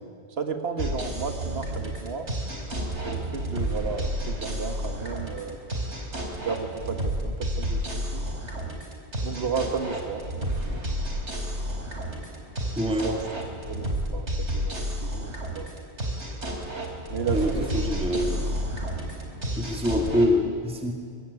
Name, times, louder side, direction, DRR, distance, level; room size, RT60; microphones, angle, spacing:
voice 1, 0.3-2.3 3.0-5.6 6.4-8.3 9.2-10.3 12.8-13.3 13.6-15.7 17.1-18.0, right 5 dB, 65° right, 6 dB, 1.9 m, -33 dB
sound 1, 0.8-20.3, right 1 dB, 85° right, 4.7 m, -31 dB
voice 2, 12.8-13.1 17.3-18.4 19.5-20.9, left 1 dB, 5° right, 2 dB, 2.6 m, -25 dB
23.5 x 23.0 x 9.9 m, 2.2 s
omnidirectional pair, 1.1 m